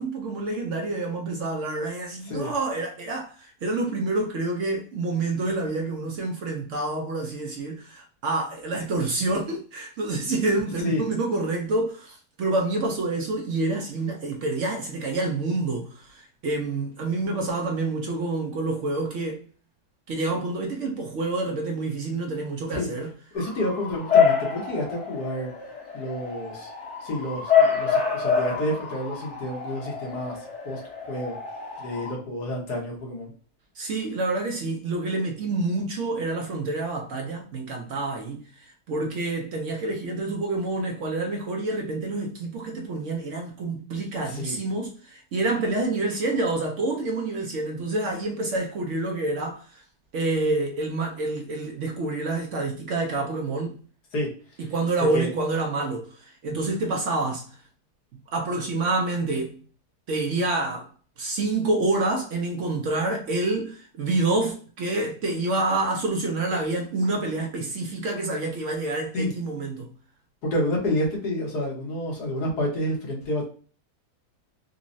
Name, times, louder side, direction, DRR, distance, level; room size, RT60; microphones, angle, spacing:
voice 1, 0.0-19.4 20.1-23.1 33.8-49.8 50.1-53.8 54.6-57.5 58.3-59.6 60.1-60.9 61.2-69.9, right 2 dB, 65° right, 0.8 m, -27 dB
voice 2, 23.3-25.5 25.9-26.7 27.0-30.4 30.6-30.8 31.1-31.3 31.8-33.3 44.2-44.6 54.1-54.3 54.6-54.7 55.0-55.3 69.1-69.3 70.4-73.4, left 1 dB, 85° left, 1.7 m, -29 dB
Bark / Motor vehicle (road) / Siren, 23.4-32.1, left 6 dB, 50° left, 1.2 m, -26 dB
3.8 x 2.1 x 2.5 m
omnidirectional pair, 1.7 m